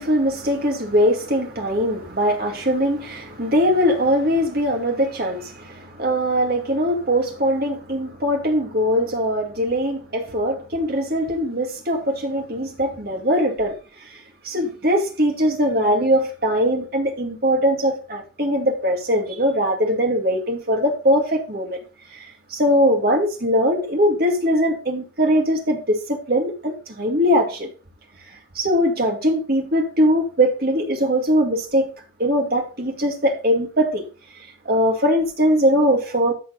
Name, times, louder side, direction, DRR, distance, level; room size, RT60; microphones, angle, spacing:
voice 1, 0.0-13.8 14.1-21.8 22.1-27.7 28.5-31.9 32.2-34.0 34.7-36.3, equal, 50° right, 2.4 m, -21 dB
13.5 x 4.5 x 4.0 m
head